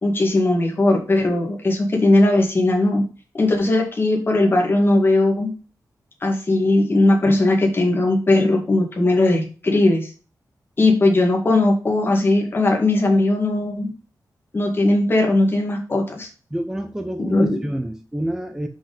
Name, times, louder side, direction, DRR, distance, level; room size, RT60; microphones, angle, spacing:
voice 1, 0.0-3.0 3.3-5.5 6.2-10.1 10.8-13.9 14.5-16.3 17.2-17.6, left 2 dB, 35° left, 1 dB, 2.0 m, -18 dB
voice 2, 16.5-18.7, right 1 dB, 10° right, 5 dB, 0.7 m, -28 dB
6.0 x 5.3 x 5.1 m, 0.35 s
wide cardioid pair, 170°, 7 cm